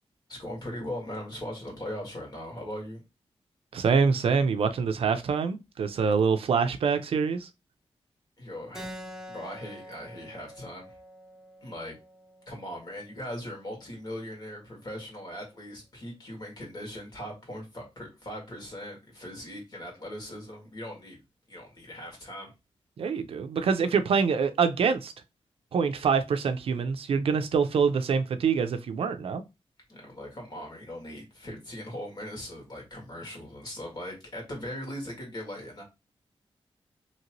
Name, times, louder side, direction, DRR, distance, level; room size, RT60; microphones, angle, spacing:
voice 1, 0.3-3.0 8.4-8.9 9.3-11.0 11.6-12.0 12.5-21.2 21.5-22.5 29.9-35.8, left 1 dB, 40° left, 1.6 m, -39 dB
voice 2, 3.7-7.5 23.0-25.1 25.7-29.4, right 5 dB, 70° right, 0.4 m, -25 dB
Keyboard (musical), 8.7-13.8, equal, 5° right, 0.6 m, -46 dB
2.9 x 2.7 x 2.9 m
wide cardioid pair, 160°, 10 cm